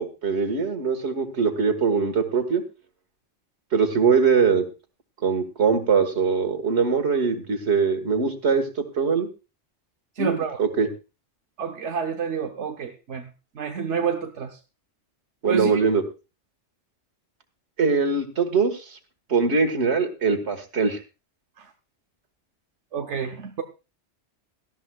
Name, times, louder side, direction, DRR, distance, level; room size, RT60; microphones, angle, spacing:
voice 1, 0.0-2.6 3.7-4.6 5.2-8.6 9.0-9.3 10.2-10.9 15.4-16.0 17.8-18.8 19.3-21.0, right 5 dB, 70° right, 2.0 m, -22 dB
voice 2, 10.2-10.6 11.6-13.3 13.5-14.6 15.5-15.8 21.6-21.7 22.9-23.6, right 6 dB, 90° right, 1.2 m, -29 dB
18.0 x 13.0 x 2.3 m
omnidirectional pair, 1.2 m